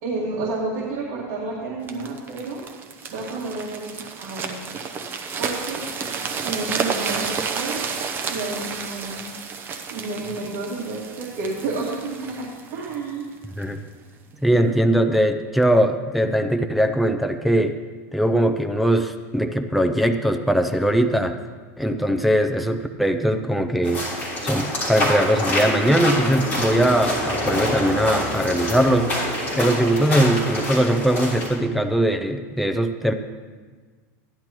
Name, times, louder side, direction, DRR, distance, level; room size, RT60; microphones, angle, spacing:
voice 1, 0.0-2.6 3.1-4.6 5.4-5.9 6.4-8.0 8.3-9.3 9.9-13.3, right 3 dB, 50° right, -4 dB, 2.0 m, -30 dB
sound 1, 1.9-13.7 14.3-14.5, right 5 dB, 25° right, 0.7 m, -31 dB
voice 2, 14.4-17.8 18.1-21.4 21.8-24.0 24.4-29.1 29.5-33.1, right 1 dB, ahead, 5 dB, 0.4 m, -20 dB
sound 2, 23.8-31.5, left 1 dB, 20° left, 3.6 m, -26 dB
15.0 x 11.0 x 3.0 m, 1.5 s
supercardioid pair, 165°, 9 cm